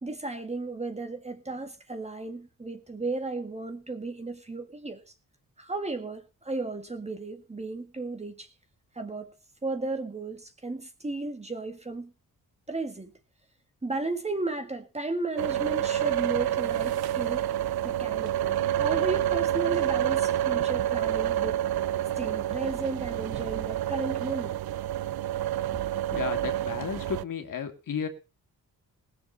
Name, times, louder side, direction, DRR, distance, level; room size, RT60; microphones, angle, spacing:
voice 1, 0.0-5.1 5.6-8.5 8.9-9.3 9.6-12.1 12.7-13.1 13.8-17.5 17.8-21.6 22.2-24.6, right 3 dB, 20° right, 1.9 m, -34 dB
sound 1, 15.4-27.2, right 11 dB, 90° right, 0.6 m, -28 dB
voice 2, 26.1-28.1, left 7 dB, 60° left, 2.2 m, -33 dB
20.0 x 7.0 x 5.6 m
wide cardioid pair, 155°, 36 cm